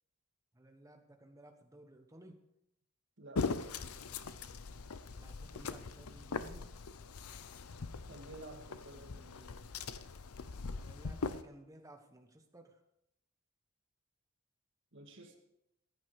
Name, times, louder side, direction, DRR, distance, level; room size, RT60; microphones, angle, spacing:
voice 1, 0.5-2.4 5.1-6.7 10.7-12.8, right 1 dB, 15° right, 5 dB, 1.3 m, -57 dB
voice 2, 3.2-3.8 8.1-9.6 14.9-15.4, right 2 dB, 55° right, 3 dB, 2.0 m, -52 dB
sound 1, 3.4-11.4, left 4 dB, 85° left, 0.7 m, -41 dB
15.0 x 9.6 x 4.9 m, 0.82 s
head